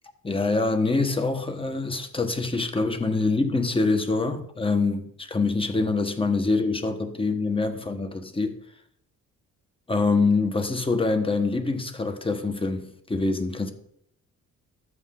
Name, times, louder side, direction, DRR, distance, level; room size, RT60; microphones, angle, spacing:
voice 1, 0.2-8.6 9.9-13.7, left 3 dB, 15° left, 1.4 m, -25 dB
12.5 x 8.1 x 3.8 m
cardioid pair, 90°, 30 cm